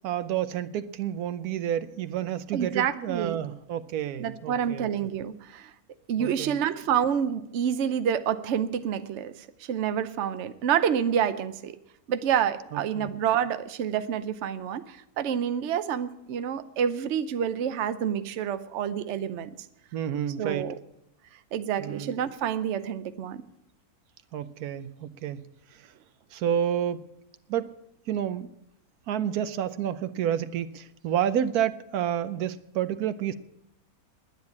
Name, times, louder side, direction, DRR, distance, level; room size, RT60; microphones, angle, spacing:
voice 1, 0.0-4.9 6.2-6.6 12.7-13.1 19.9-20.7 21.8-22.2 24.3-25.4 25.7-25.9 26.3-27.1 27.5-27.7 28.1-28.5 29.1-33.3, right 10 dB, 80° right, 12 dB, 1.2 m, -30 dB
voice 2, 2.5-3.4 4.2-5.7 6.1-11.8 12.1-19.5 20.4-20.7 21.5-23.4, right 8 dB, 55° right, 11 dB, 0.9 m, -28 dB
10.5 x 9.8 x 9.4 m, 0.82 s
omnidirectional pair, 1.6 m